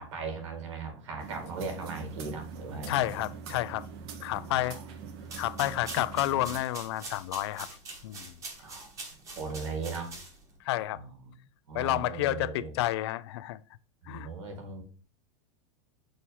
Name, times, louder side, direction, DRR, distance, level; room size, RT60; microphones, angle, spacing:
voice 1, 0.0-3.0 4.5-4.8 8.6-8.9 9.4-10.1 10.9-11.3 11.7-12.8 14.0-14.8, right 4 dB, 80° right, 2.3 m, -38 dB
sound 1, 1.2-6.6, right 6 dB, 60° right, 1.1 m, -43 dB
voice 2, 2.9-3.9 4.2-4.8 5.4-7.7 8.0-8.3 10.6-11.0 11.7-13.6 14.1-14.3, left 15 dB, 60° left, 0.4 m, -30 dB
sound 2, 5.2-10.6, right 3 dB, 20° right, 1.2 m, -44 dB
6.4 x 2.7 x 5.5 m
supercardioid pair, 160°, 16 cm